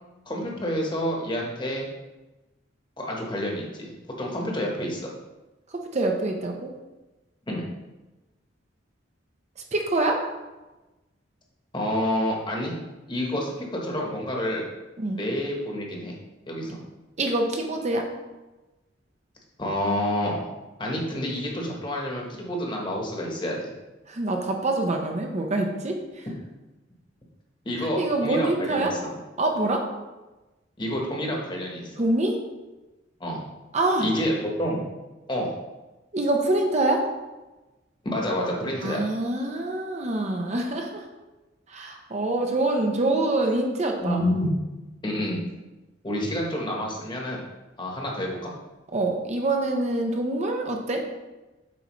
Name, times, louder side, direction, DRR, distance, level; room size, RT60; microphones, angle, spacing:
voice 1, 0.3-1.9 3.0-5.1 7.5-7.6 11.7-12.8 13.1-14.7 15.1-16.2 16.5-16.8 19.6-20.5 20.8-23.7 27.6-29.1 30.8-31.9 33.2-33.4 34.0-34.8 35.3-35.5 38.0-39.1 44.0-44.5 45.0-45.4 46.0-47.4 47.8-48.5, equal, 25° left, -1 dB, 1.2 m, -28 dB
voice 2, 5.7-6.7 9.7-10.3 15.0-15.2 17.2-18.1 24.1-26.3 27.8-28.9 29.4-29.9 32.0-32.4 33.7-34.1 36.1-37.1 38.8-41.0 41.7-44.3 48.9-51.0, right 2 dB, 40° right, 3 dB, 0.6 m, -25 dB
7.8 x 4.7 x 3.1 m, 1.1 s
head